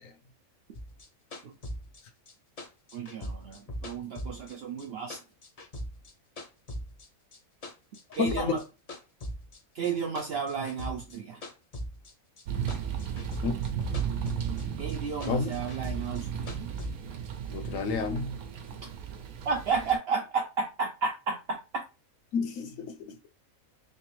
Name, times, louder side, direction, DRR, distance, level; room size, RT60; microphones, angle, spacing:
sound 1, 0.7-4.8 5.1-7.1 7.3-8.6 8.9-12.4 12.7-14.6 14.9-16.9, equal, 45° left, 0.4 m, -40 dB
voice 1, 2.9-5.2 8.2-8.6 9.7-11.4 14.8-16.7 19.4-21.6, right 5 dB, 65° right, 0.6 m, -32 dB
voice 2, 8.2-8.6 13.4-13.5 15.2-15.5 17.5-18.3 22.3-23.3, left 5 dB, 70° left, 1.0 m, -30 dB
sound 2, 12.5-20.0, right 8 dB, 85° right, 1.1 m, -35 dB
3.3 x 3.3 x 3.1 m
omnidirectional pair, 1.5 m